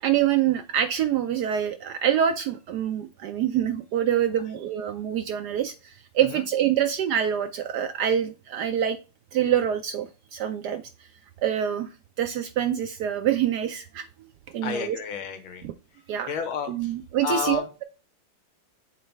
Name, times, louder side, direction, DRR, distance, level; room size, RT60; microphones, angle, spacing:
voice 1, 0.0-9.0 9.3-10.8 11.4-11.9 12.2-14.1 14.5-15.0 15.6-15.7 16.1-16.3 16.7-17.8, right 10 dB, 75° right, 9 dB, 0.9 m, -25 dB
voice 2, 14.6-15.7 16.3-16.9 17.2-17.7, left 7 dB, 90° left, 7 dB, 1.8 m, -31 dB
7.5 x 4.1 x 3.4 m, 0.33 s
omnidirectional pair, 2.2 m